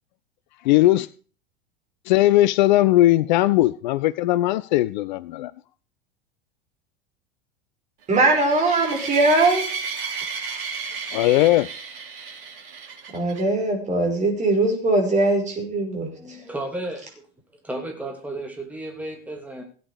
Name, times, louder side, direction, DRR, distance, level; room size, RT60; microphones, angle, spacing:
voice 1, 0.6-1.1 2.1-5.5 11.1-11.7, left 16 dB, 50° left, 0.5 m, -18 dB
voice 2, 8.1-9.7 13.1-16.4, right 2 dB, 25° right, 5.6 m, -21 dB
sound 1, 8.1-13.4, right 5 dB, 55° right, 4.2 m, -33 dB
voice 3, 16.1-19.6, right 1 dB, 5° right, 2.9 m, -34 dB
16.5 x 9.0 x 5.0 m
figure-of-eight pair, 85°, 31 cm